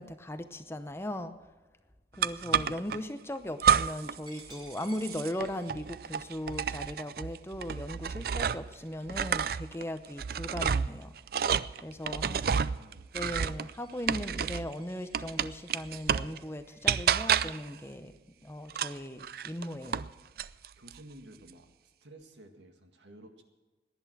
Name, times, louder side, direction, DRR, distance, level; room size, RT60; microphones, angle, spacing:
voice 1, 0.0-1.3 2.2-11.1 11.8-12.6 13.1-18.1 18.4-20.1, left 1 dB, 15° left, 9 dB, 0.7 m, -38 dB
sound 1, 2.2-3.0 3.6-4.2 4.5-8.7 9.1-14.7 15.1-16.4 16.9-17.7 18.7-20.1 20.4-21.0, right 7 dB, 55° right, 0.4 m, -30 dB
Coin (dropping), 4.3-9.7 10.1-10.4 10.8-15.9, right 2 dB, 25° right, 2.7 m, -58 dB
voice 2, 12.2-13.1 20.5-23.4, right 1 dB, 85° right, 5 dB, 1.9 m, -53 dB
18.5 x 11.0 x 6.1 m, 1.2 s
head